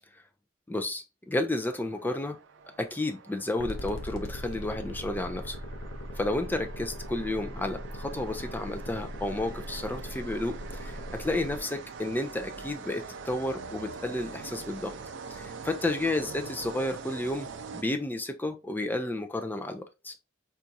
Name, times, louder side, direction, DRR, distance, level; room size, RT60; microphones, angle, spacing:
voice 1, 0.7-2.4 2.8-5.6 6.2-14.9 15.3-20.1, left 2 dB, 10° left, 0.3 m, -32 dB
sound 1, 1.5-18.3, right 5 dB, 65° right, 0.4 m, -44 dB
sound 2, 3.6-11.6, equal, 80° left, 0.7 m, -39 dB
4.0 x 2.3 x 2.6 m
head